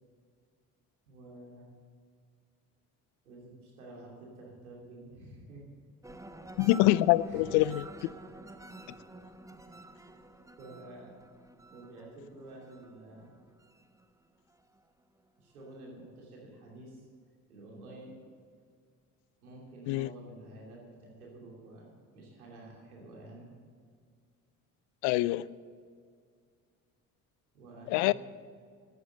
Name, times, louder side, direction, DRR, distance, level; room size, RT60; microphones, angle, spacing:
voice 1, 1.1-1.7 3.2-5.7 6.1-6.4 7.2-7.7 9.5-10.2 10.6-11.1 11.7-13.4 15.4-17.1 17.5-18.2 19.4-23.5 27.5-28.1, right 2 dB, 90° right, -2 dB, 3.0 m, -50 dB
sound 1, 6.0-14.8 15.3-15.8, right 1 dB, 5° right, 0.9 m, -50 dB
voice 2, 6.6-7.8 19.9-20.1 25.0-25.5 27.9-28.1, left 17 dB, 70° left, 20 dB, 0.5 m, -25 dB
12.5 x 9.0 x 7.7 m, 2.1 s
hypercardioid pair, 55°, 43 cm